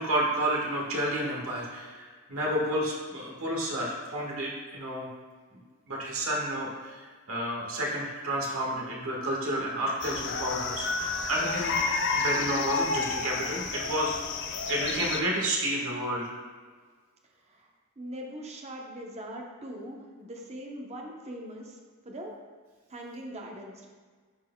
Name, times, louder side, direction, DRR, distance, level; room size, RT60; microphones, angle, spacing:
voice 1, 0.0-5.1 5.9-7.0 7.3-11.8 12.1-14.4 14.7-16.3, right 1 dB, 65° right, -3 dB, 1.6 m, -30 dB
sound 1, 10.0-15.2, left 4 dB, 50° left, 0.5 m, -30 dB
voice 2, 18.0-21.8 22.0-22.3 22.9-23.9, equal, 30° right, 0 dB, 0.9 m, -41 dB
11.0 x 4.6 x 2.3 m, 1.5 s
head